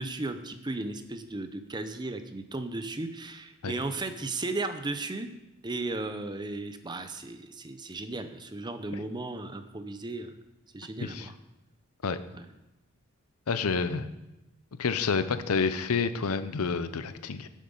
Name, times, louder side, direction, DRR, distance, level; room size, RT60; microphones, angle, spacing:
voice 1, 0.0-5.3 5.6-10.4 10.7-11.3 12.3-12.5, right 2 dB, 20° right, 9 dB, 0.6 m, -35 dB
voice 2, 13.5-14.1 14.8-17.5, left 5 dB, 85° left, 12 dB, 0.7 m, -29 dB
8.9 x 7.4 x 5.4 m, 0.97 s
head